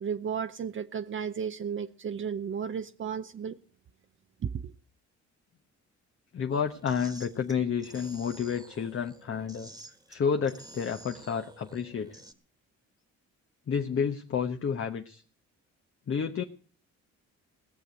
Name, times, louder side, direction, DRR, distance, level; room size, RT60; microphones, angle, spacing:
voice 1, 0.0-3.6 4.4-4.7, right 7 dB, 40° right, 0.7 m, -34 dB
voice 2, 6.3-9.7 10.1-12.2 13.7-15.2 16.1-16.4, left 6 dB, 45° left, 1.1 m, -30 dB
sound 1, 6.5-12.3, right 1 dB, 10° right, 1.6 m, -50 dB
18.5 x 6.9 x 7.9 m
cardioid pair, 90°, 30 cm